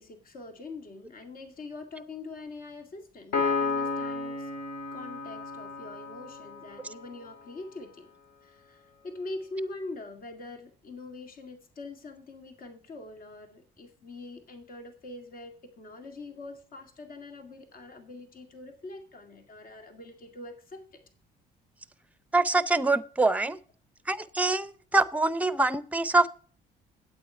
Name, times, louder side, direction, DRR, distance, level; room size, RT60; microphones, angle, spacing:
voice 1, 0.0-4.5 4.9-8.1 8.4-20.8, left 2 dB, 55° left, 5 dB, 2.2 m, -43 dB
Piano, 3.3-6.9, left 4 dB, 80° left, 2.5 m, -32 dB
voice 2, 22.3-23.6 24.1-26.3, right 2 dB, 10° right, 17 dB, 0.6 m, -24 dB
8.7 x 8.5 x 4.5 m, 0.41 s
cardioid pair, 110°, 17 cm